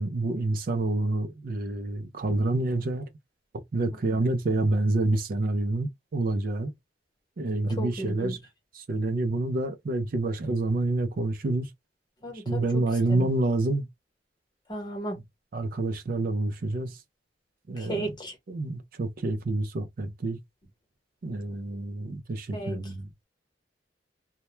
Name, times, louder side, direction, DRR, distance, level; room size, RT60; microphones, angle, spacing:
voice 1, 0.0-3.1 3.7-6.7 7.4-8.4 8.8-11.7 12.5-13.9 15.5-17.0 17.7-18.1 18.5-20.4 21.2-23.1, right 2 dB, 55° right, 0.4 m, -28 dB
voice 2, 7.8-8.4 12.2-13.3 14.7-15.2 17.8-18.4 22.5-22.9, right 1 dB, 25° left, 0.9 m, -35 dB
2.2 x 2.1 x 3.0 m
head